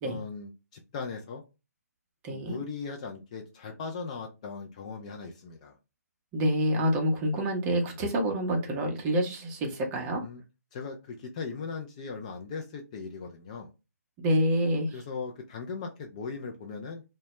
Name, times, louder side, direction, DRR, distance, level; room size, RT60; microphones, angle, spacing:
voice 1, 0.0-1.4 2.3-5.7 10.2-10.4 10.7-13.7 14.9-17.0, left 4 dB, 25° left, 2 dB, 0.3 m, -38 dB
voice 2, 2.2-2.6 6.3-10.2 14.2-15.0, equal, 20° right, 2 dB, 0.6 m, -27 dB
2.1 x 2.1 x 2.8 m, 0.27 s
figure-of-eight pair, 145°, 9 cm